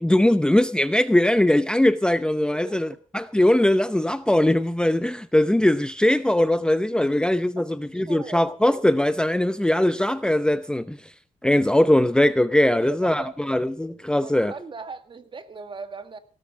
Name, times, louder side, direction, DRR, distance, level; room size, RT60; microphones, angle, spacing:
voice 1, 0.0-2.9 3.1-11.1 11.4-14.5, left 1 dB, 5° left, 0.7 m, -20 dB
voice 2, 2.5-3.0 7.6-8.4 12.7-13.5 14.2-16.2, right 4 dB, 40° right, 1.9 m, -39 dB
16.5 x 13.0 x 4.9 m
cardioid pair, 100°, 13 cm